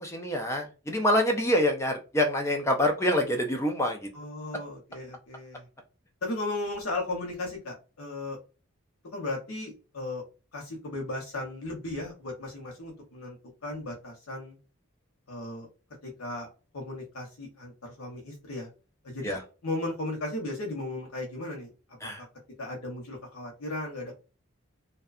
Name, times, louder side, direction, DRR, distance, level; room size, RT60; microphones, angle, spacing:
voice 1, 0.0-4.0 19.2-19.4 22.0-22.2, left 1 dB, 15° left, 3 dB, 0.4 m, -26 dB
voice 2, 4.1-5.6 6.2-8.4 9.1-10.2 10.5-13.4 13.6-14.6 15.3-15.7 16.0-16.5 16.7-18.7 19.0-21.7 22.6-24.1, left 2 dB, 90° left, 0 dB, 0.8 m, -36 dB
2.6 x 2.2 x 2.4 m, 0.33 s
head